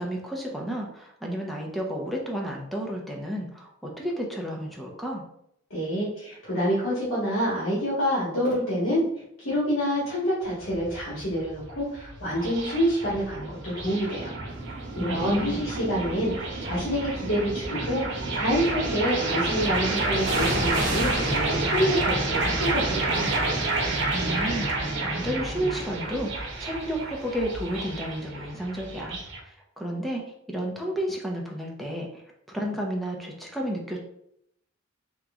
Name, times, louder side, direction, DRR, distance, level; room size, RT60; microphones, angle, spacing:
voice 1, 0.0-5.2 15.0-15.7 24.1-29.2 29.5-34.0, equal, ahead, -1 dB, 0.7 m, -32 dB
voice 2, 5.7-9.0 9.4-14.3 14.9-16.3 16.6-23.3, equal, 85° left, -8 dB, 1.5 m, -27 dB
sound 1, 10.4-29.4, right 2 dB, 65° right, 1.1 m, -29 dB
sound 2, 15.2-15.6 16.4-17.3 20.2-27.8 28.1-28.2, right 1 dB, 40° right, 0.9 m, -36 dB
3.7 x 3.0 x 3.6 m, 0.74 s
head